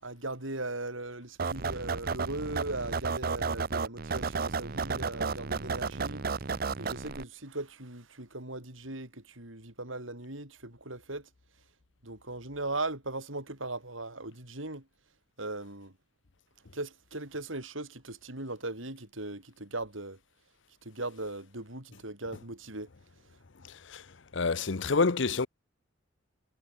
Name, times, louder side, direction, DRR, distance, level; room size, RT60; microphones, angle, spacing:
voice 1, 0.0-6.2 6.8-11.3 12.0-14.8 15.4-15.9 16.7-20.2 20.8-22.9, right 2 dB, 85° right, 6.9 m, -38 dB
sound 1, 1.4-7.2, right 4 dB, 50° right, 0.8 m, -32 dB
voice 2, 23.6-24.0 24.3-25.5, left 4 dB, 70° left, 0.8 m, -28 dB
head